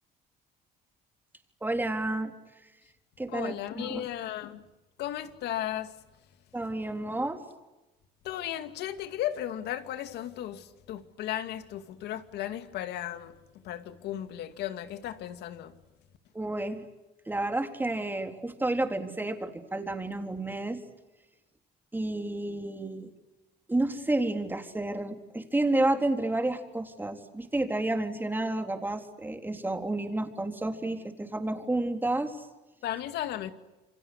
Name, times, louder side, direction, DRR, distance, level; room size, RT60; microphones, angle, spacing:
voice 1, 1.6-2.3 3.2-4.0 6.5-7.4 16.3-16.9 17.3-20.8 21.9-23.1 23.7-32.5, right 2 dB, 10° right, 3.7 m, -30 dB
voice 2, 3.3-4.6 5.0-5.9 8.2-13.3 13.6-15.7 32.8-33.5, left 12 dB, 80° left, 2.4 m, -35 dB
28.5 x 25.5 x 8.2 m
cardioid pair, 110°, 17 cm